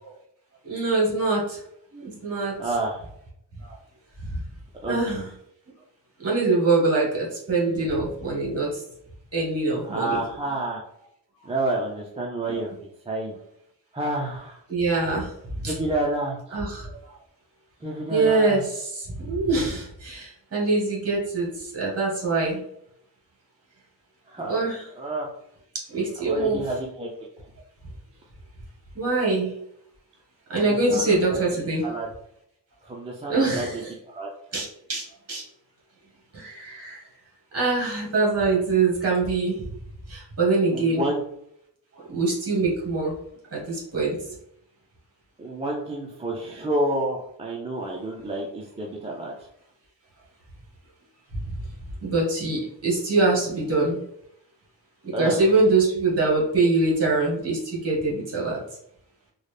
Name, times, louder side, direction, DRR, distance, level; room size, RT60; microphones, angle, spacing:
voice 1, 0.6-1.6 1.9-2.6 3.6-3.7 4.3-4.4 4.9-5.3 6.2-8.8 9.3-10.2 12.5-12.6 14.7-15.3 15.6-15.7 16.5-17.1 18.1-22.6 24.4-24.8 25.9-26.6 28.9-29.5 30.5-31.8 33.3-33.9 34.5-35.4 36.3-37.0 37.5-39.7 40.1-41.0 41.9-43.1 43.5-44.2 47.9-48.0 52.0-54.0 55.0-58.6, right 3 dB, 35° right, -4 dB, 1.4 m, -24 dB
voice 2, 2.6-3.0 4.8-5.2 9.8-10.8 11.4-12.7 13.1-13.3 13.9-14.6 15.7-16.6 17.8-18.6 24.3-24.5 24.9-25.3 26.2-27.1 30.6-31.2 31.8-32.1 32.9-33.7 34.1-34.3 40.7-41.2 45.4-49.3 55.1-55.4, right 1 dB, 15° right, -2 dB, 0.3 m, -29 dB
3.9 x 2.1 x 3.2 m, 0.73 s
wide cardioid pair, 155°, 44 cm